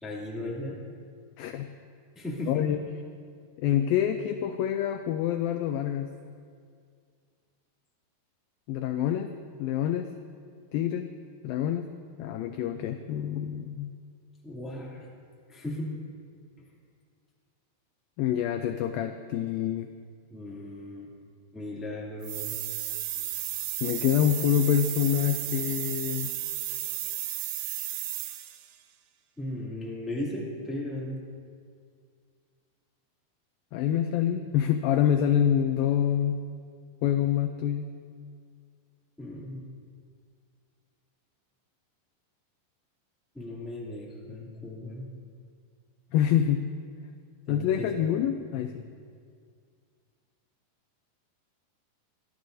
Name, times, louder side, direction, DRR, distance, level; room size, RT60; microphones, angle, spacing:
voice 1, 0.0-0.8 2.1-2.7 14.4-15.1 15.5-15.9 16.6-16.7 20.3-21.1 21.5-22.6 29.4-31.2 39.2-39.6 43.3-45.1 47.5-48.7, left 1 dB, ahead, -5 dB, 1.5 m, -37 dB
voice 2, 1.4-1.7 2.5-2.8 3.6-6.1 8.7-9.3 9.6-10.1 10.7-11.1 11.4-11.9 12.2-13.9 18.2-19.9 23.8-26.3 33.7-36.4 37.0-37.9 46.1-46.6 47.5-48.9, left 10 dB, 85° left, 7 dB, 2.0 m, -26 dB
sound 1, 22.2-28.7, right 13 dB, 85° right, 2.8 m, -34 dB
24.5 x 14.0 x 2.7 m, 2.1 s
omnidirectional pair, 4.7 m